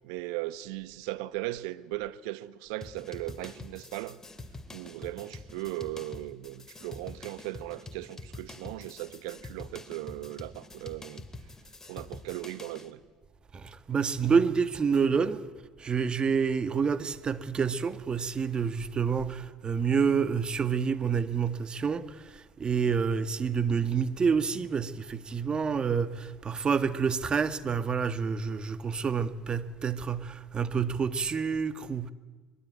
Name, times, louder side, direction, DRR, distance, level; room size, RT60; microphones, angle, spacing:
voice 1, 0.0-4.2 4.7-11.2 11.8-13.0, right 17 dB, 75° right, 1.0 m, -38 dB
sound 1, 2.8-12.9, left 2 dB, 20° left, 2.8 m, -46 dB
voice 2, 13.5-15.4 15.8-32.1, right 6 dB, 35° right, 1.7 m, -28 dB
24.5 x 21.5 x 9.3 m
hypercardioid pair, 65°, 3 cm